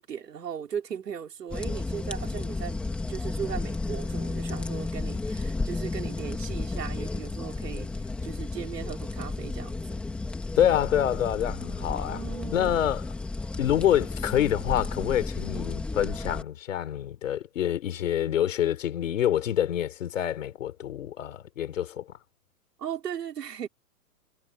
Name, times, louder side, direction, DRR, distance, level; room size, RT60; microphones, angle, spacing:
voice 1, 0.0-2.8 3.1-10.0 11.9-12.7 22.8-23.7, right 8 dB, 85° right, 4.1 m, -37 dB
sound 1, 1.5-16.4, left 3 dB, ahead, 1.2 m, -33 dB
voice 2, 10.6-12.2 12.5-13.1 13.6-22.1, left 11 dB, 50° left, 3.4 m, -26 dB
hypercardioid pair, 170°, 47 cm